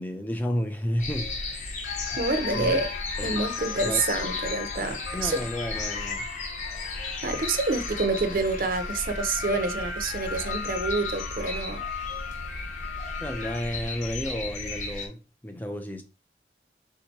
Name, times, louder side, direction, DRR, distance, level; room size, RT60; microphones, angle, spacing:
voice 1, 0.0-1.3 2.1-2.8 3.2-3.4 3.8-4.0 5.1-6.3 13.2-16.0, equal, 10° left, 0.4 m, -32 dB
sound 1, 1.0-15.1, left 2 dB, 45° left, 0.9 m, -35 dB
sound 2, 1.2-1.3 1.8-13.9, left 7 dB, 80° left, 0.4 m, -37 dB
voice 2, 2.2-2.9 3.2-5.4 7.2-11.8, right 3 dB, 50° right, 0.6 m, -27 dB
3.7 x 2.8 x 4.4 m
head